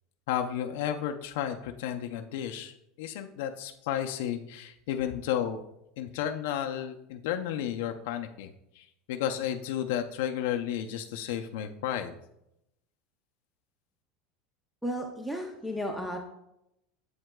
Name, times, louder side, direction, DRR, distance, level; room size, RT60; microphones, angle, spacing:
voice 1, 0.3-2.7 3.0-5.6 6.0-12.1, left 10 dB, 70° left, 4 dB, 0.5 m, -32 dB
voice 2, 14.8-16.2, equal, ahead, 2 dB, 0.5 m, -33 dB
8.0 x 7.6 x 2.2 m, 0.82 s
supercardioid pair, 175°, 0 cm